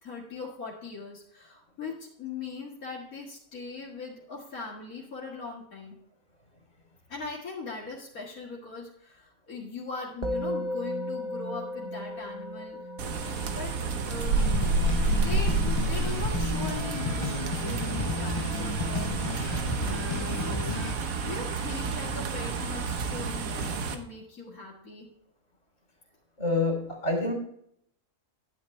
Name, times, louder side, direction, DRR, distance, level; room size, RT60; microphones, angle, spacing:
voice 1, 0.0-5.9 7.1-12.8 13.5-19.3 20.0-25.1, left 4 dB, 85° left, -5 dB, 2.4 m, -40 dB
Musical instrument, 10.2-19.7, left 1 dB, 35° right, 1.0 m, -38 dB
sound 1, 13.0-23.9, right 3 dB, 75° right, 1.5 m, -29 dB
sound 2, 14.4-20.9, left 3 dB, 30° left, 0.5 m, -33 dB
voice 2, 26.4-27.3, left 2 dB, 60° left, 1 dB, 3.6 m, -27 dB
11.5 x 9.0 x 3.3 m, 0.72 s
omnidirectional pair, 1.5 m